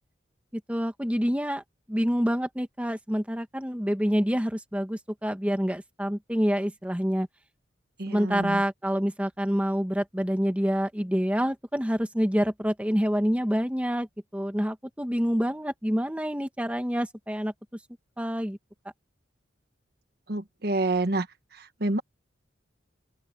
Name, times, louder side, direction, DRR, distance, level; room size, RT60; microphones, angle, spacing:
voice 1, 0.7-1.6 1.9-7.3 8.1-14.1 14.3-17.5 18.2-18.6, equal, 5° right, 1.5 m, -27 dB
voice 2, 8.0-8.6 20.3-21.3 21.5-22.0, right 2 dB, 55° right, 1.3 m, -28 dB
open air
head